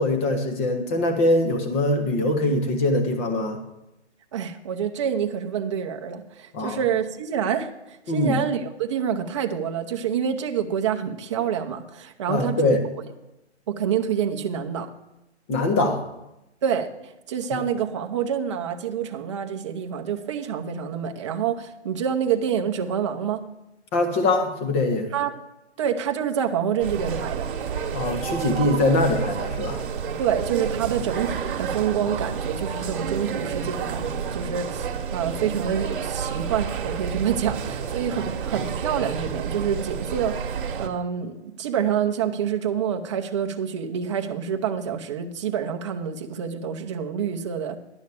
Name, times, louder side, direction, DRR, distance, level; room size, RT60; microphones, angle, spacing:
voice 1, 0.0-3.6 6.5-6.8 8.1-8.4 12.3-12.8 15.5-16.0 17.5-17.6 23.9-25.1 27.9-29.9, left 2 dB, 10° left, 5 dB, 0.6 m, -22 dB
voice 2, 4.3-12.8 13.7-14.9 16.6-23.4 25.1-25.3 25.8-27.5 30.2-47.8, right 8 dB, 25° right, 5 dB, 0.7 m, -27 dB
sound 1, 26.8-40.9, right 7 dB, 50° right, 1.2 m, -30 dB
10.5 x 6.3 x 6.9 m, 0.92 s
hypercardioid pair, 160°, 34 cm